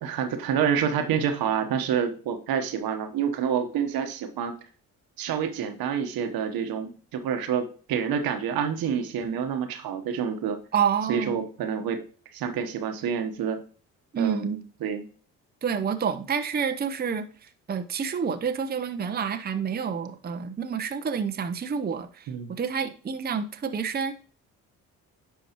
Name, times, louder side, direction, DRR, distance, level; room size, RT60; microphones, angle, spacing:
voice 1, 0.0-4.6 5.2-10.6 11.1-12.0 12.3-13.6 14.2-15.0 22.3-22.5, right 7 dB, 70° right, 1.1 m, -28 dB
voice 2, 10.7-11.5 14.1-14.6 15.6-24.1, right 7 dB, 25° right, 0.7 m, -28 dB
10.0 x 4.5 x 2.9 m
supercardioid pair, 60°, 37 cm